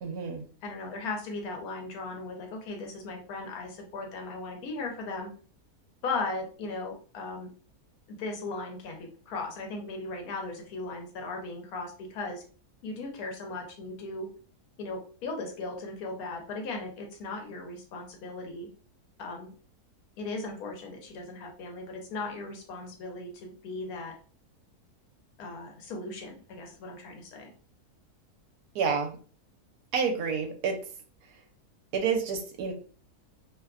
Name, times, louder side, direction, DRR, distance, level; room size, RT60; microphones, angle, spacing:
voice 1, 0.0-0.4 28.7-29.2 29.9-30.8 31.9-32.7, right 6 dB, 80° right, 4 dB, 1.1 m, -29 dB
voice 2, 0.6-5.3 6.0-7.5 8.1-12.4 12.8-14.3 14.8-18.7 19.2-19.5 20.2-24.1 25.4-27.5, left 3 dB, 70° left, 2 dB, 1.1 m, -37 dB
2.8 x 2.1 x 2.4 m, 0.41 s
omnidirectional pair, 1.7 m